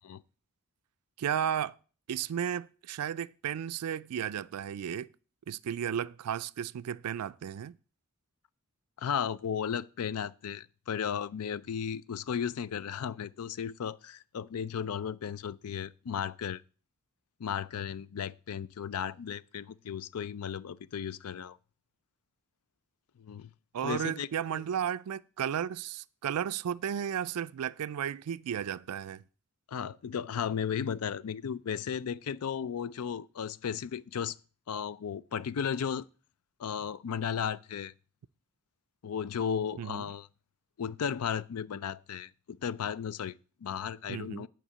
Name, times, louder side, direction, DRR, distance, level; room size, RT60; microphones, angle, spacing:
voice 1, 1.2-1.8 2.1-5.1 5.5-7.8 23.7-29.2 39.8-40.0 44.1-44.5, right 9 dB, 85° right, 0.4 m, -34 dB
voice 2, 9.0-16.6 17.4-21.6 23.2-23.5 23.8-24.3 24.5-24.6 29.7-34.4 34.7-36.1 36.6-37.9 39.0-40.3 40.8-44.5, left 7 dB, 75° left, 0.4 m, -35 dB
10.0 x 4.7 x 7.6 m
head